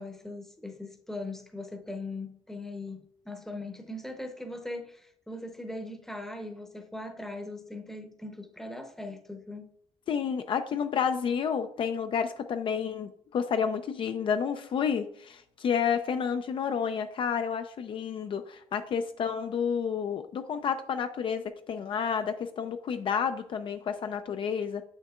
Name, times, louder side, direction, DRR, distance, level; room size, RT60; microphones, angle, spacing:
voice 1, 0.0-9.7, left 2 dB, 5° left, 0.8 m, -40 dB
voice 2, 10.1-24.8, left 7 dB, 50° left, 0.4 m, -30 dB
7.5 x 6.4 x 2.4 m
cardioid pair, 120°, 11 cm